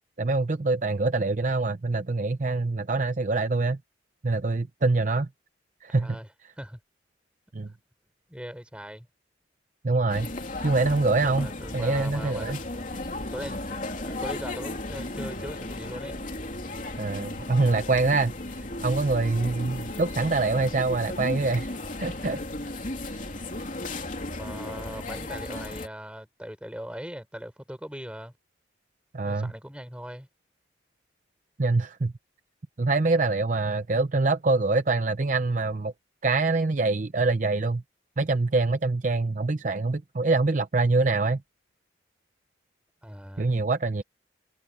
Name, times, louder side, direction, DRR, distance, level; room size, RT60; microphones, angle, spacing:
voice 1, 0.2-3.8 4.2-5.3 5.8-6.2 7.5-7.7 9.8-10.3 10.6-11.5 11.7-12.6 17.0-21.7 22.0-22.4 29.1-29.5 31.6-32.1 32.8-35.9 36.2-37.8 38.2-41.4 43.4-44.0, right 3 dB, 40° right, 0.6 m, -25 dB
voice 2, 5.9-6.3 6.6-6.8 8.3-9.1 11.2-12.5 13.3-16.2 24.3-28.3 29.2-30.3 43.0-43.5, equal, 5° right, 6.3 m, -40 dB
sound 1, 10.1-25.9, left 2 dB, 45° left, 3.2 m, -35 dB
head